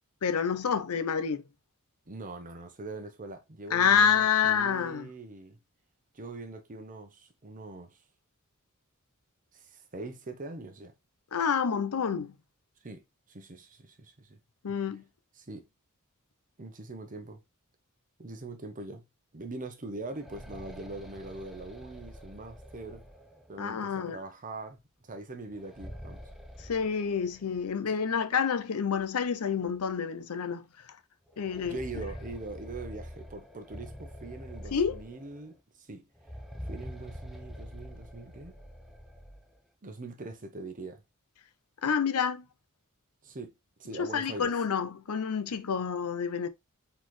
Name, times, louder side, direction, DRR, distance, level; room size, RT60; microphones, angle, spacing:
voice 1, 0.2-1.4 3.7-5.1 11.3-12.3 14.6-15.0 23.6-24.2 26.6-31.0 31.4-31.8 34.7-35.0 41.8-42.5 44.0-46.5, left 7 dB, 75° left, 0.6 m, -28 dB
voice 2, 2.1-5.6 6.1-8.0 9.5-10.9 12.8-13.0 13.3-14.4 15.4-15.6 16.6-17.4 18.2-19.0 19.3-23.1 23.5-26.3 31.6-36.1 36.6-38.6 39.8-41.0 43.2-43.5 43.8-44.5, right 2 dB, 40° right, 0.9 m, -42 dB
sound 1, 19.9-23.7 25.5-27.7 28.0-28.1 29.0-29.1 29.6-29.7 31.3-35.5 36.2-39.5, equal, ahead, 0.6 m, -45 dB
4.1 x 4.0 x 3.1 m
head